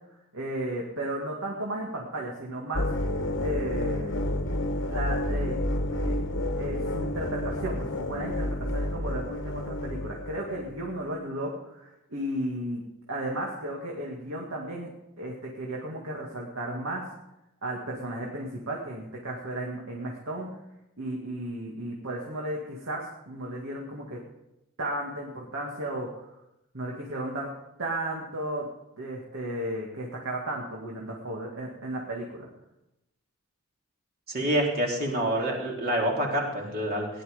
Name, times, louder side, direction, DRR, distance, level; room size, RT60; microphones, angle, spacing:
voice 1, 0.3-2.9 3.4-4.2 4.9-5.6 5.9-6.3 6.6-12.8 13.1-14.9 15.2-17.1 17.6-20.5 21.0-24.2 24.8-26.3 26.7-27.5 27.8-28.7 29.0-32.5, right 1 dB, 65° right, -2 dB, 2.1 m, -34 dB
sound 1, 2.7-10.8, left 1 dB, 60° left, 1.2 m, -30 dB
voice 2, 34.3-37.1, right 1 dB, 45° right, -2 dB, 3.5 m, -27 dB
17.0 x 11.0 x 5.1 m, 0.88 s
head